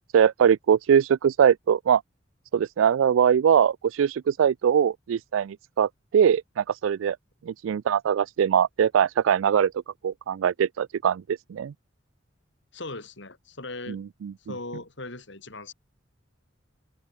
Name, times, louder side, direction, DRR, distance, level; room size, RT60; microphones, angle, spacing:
voice 1, 0.1-2.0 2.5-7.2 7.5-9.7 10.0-11.7 13.9-14.3, right 8 dB, 90° right, 0.3 m, -22 dB
voice 2, 12.7-14.0 14.5-15.7, left 2 dB, 65° left, 5.7 m, -38 dB
open air
head